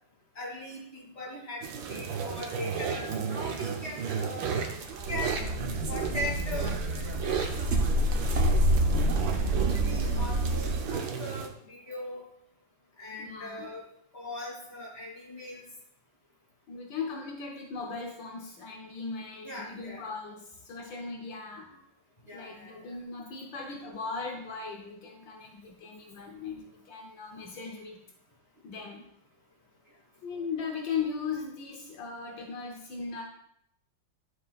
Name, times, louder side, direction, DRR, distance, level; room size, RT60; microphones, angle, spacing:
voice 1, 0.3-4.5 5.1-5.4 5.9-7.8 9.5-12.2 13.0-13.8 14.1-15.6 19.4-20.0 22.2-23.0, left 1 dB, 20° left, -4 dB, 2.6 m, -40 dB
sound 1, 1.6-11.5, right 6 dB, 80° right, 1.7 m, -34 dB
sound 2, 5.0-10.9, equal, 50° right, 0.9 m, -27 dB
voice 2, 13.2-13.7 16.7-21.8 22.3-28.0 28.6-29.0 30.2-33.2, left 5 dB, 75° left, 1 dB, 1.7 m, -38 dB
12.0 x 6.6 x 2.4 m, 0.74 s
omnidirectional pair, 2.1 m